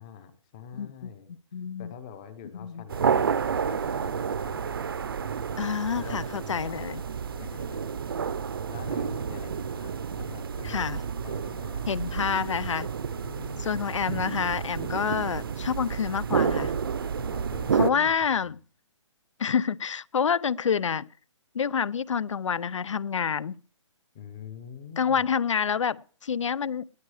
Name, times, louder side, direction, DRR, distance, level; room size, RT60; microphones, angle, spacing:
voice 1, 0.0-1.3 1.8-4.7 6.0-7.0 7.4-7.8 8.7-12.6 13.2-14.1 17.2-18.3 24.1-25.2, left 8 dB, 10° left, 0.7 m, -45 dB
voice 2, 0.7-1.1 1.5-1.9 2.6-2.8 5.6-7.0 10.6-11.0 11.9-12.9 13.6-16.7 17.7-18.5 19.4-21.1 21.5-23.6 25.0-26.9, left 7 dB, 75° left, 0.6 m, -28 dB
sound 1, 2.9-17.9, right 6 dB, 45° right, 0.7 m, -30 dB
19.0 x 9.4 x 4.8 m
hypercardioid pair, 175°, 16 cm